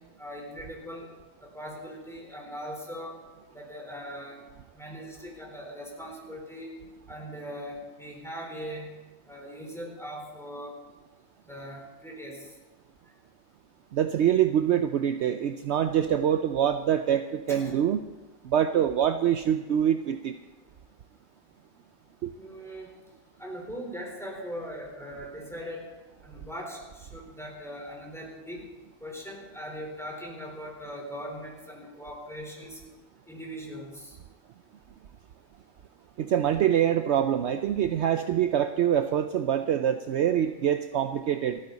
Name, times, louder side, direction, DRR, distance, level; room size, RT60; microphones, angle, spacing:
voice 1, 0.2-1.1 1.4-3.2 3.5-4.4 4.7-6.7 7.1-8.9 9.2-10.7 11.5-12.5 17.5-17.8 22.3-22.9 23.4-25.9 26.2-28.6 29.0-32.8 33.3-34.2, equal, ahead, -1 dB, 4.0 m, -40 dB
voice 2, 13.9-18.0 18.4-20.4 22.2-22.3 36.2-41.6, right 9 dB, 65° right, 8 dB, 0.8 m, -25 dB
28.5 x 9.6 x 4.1 m, 1.2 s
omnidirectional pair, 1.3 m